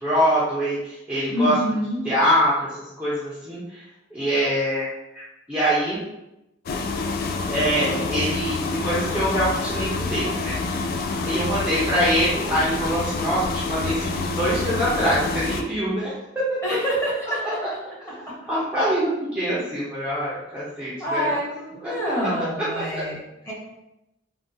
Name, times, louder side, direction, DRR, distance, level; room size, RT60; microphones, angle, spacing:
voice 1, 0.0-1.5 2.1-3.8 4.1-5.2 5.5-6.0 7.5-10.5 11.1-16.8 18.5-21.3 21.8-21.9 22.7-22.8, equal, 5° right, -10 dB, 0.6 m, -24 dB
voice 2, 1.3-2.0 16.6-17.6 21.0-23.2 23.4-23.5, equal, 15° left, -7 dB, 1.2 m, -26 dB
sound 1, 6.7-15.6, left 3 dB, 55° left, 0.3 m, -27 dB
3.6 x 2.2 x 2.7 m, 0.91 s
head